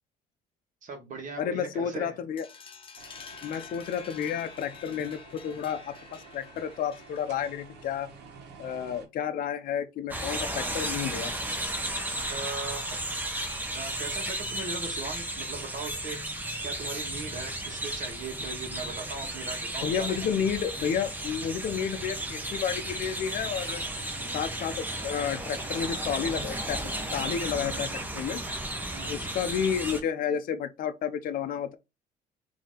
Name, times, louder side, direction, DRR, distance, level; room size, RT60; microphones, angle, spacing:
voice 1, 0.8-2.2 3.5-3.6 12.3-13.0 13.7-16.2 16.6-20.3 28.9-29.3, right 3 dB, 50° right, 1.4 m, -39 dB
voice 2, 1.4-2.4 3.4-8.1 8.6-11.3 19.8-23.8 24.3-28.4 29.1-31.7, left 8 dB, 55° left, 0.6 m, -31 dB
sound 1, 2.4-7.9, left 6 dB, 30° left, 1.0 m, -48 dB
sound 2, 3.0-9.1, right 5 dB, 85° right, 1.2 m, -51 dB
sound 3, 10.1-30.0, right 1 dB, 10° right, 0.9 m, -34 dB
4.0 x 2.9 x 3.7 m
cardioid pair, 110°, 17 cm